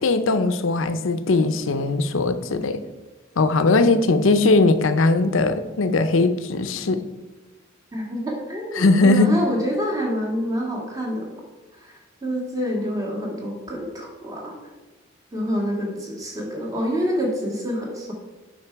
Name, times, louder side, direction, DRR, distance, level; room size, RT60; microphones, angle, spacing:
voice 1, 0.0-2.8 3.4-7.0 8.8-9.3, left 3 dB, 75° left, 9 dB, 0.6 m, -19 dB
voice 2, 7.9-11.3 11.8-14.6 15.3-18.1, equal, 15° right, -2 dB, 1.8 m, -27 dB
8.9 x 5.8 x 4.6 m, 1.2 s
head